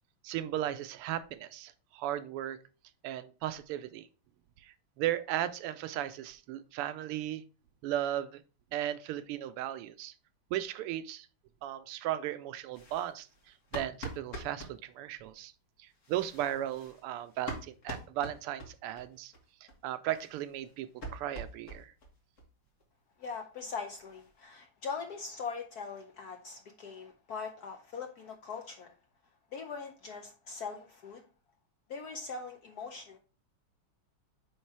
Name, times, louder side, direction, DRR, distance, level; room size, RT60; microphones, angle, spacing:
voice 1, 0.2-2.6 3.0-4.1 4.6-7.4 7.8-8.4 8.7-10.1 10.5-11.3 11.6-13.3 13.7-15.5 15.8-19.3 19.6-21.9, right 12 dB, 90° right, 13 dB, 1.5 m, -36 dB
sound 1, 12.7-14.8 15.9-19.0 19.3-19.4 19.7-19.8 20.1-22.1 22.4-22.5 22.8-22.9 23.2-23.3 23.6-24.4, right 1 dB, 40° left, 1.5 m, -45 dB
voice 2, 23.2-28.9 29.5-31.2 31.9-33.2, left 5 dB, 65° left, 5 dB, 0.9 m, -41 dB
8.5 x 3.2 x 4.6 m, 0.35 s
omnidirectional pair, 2.4 m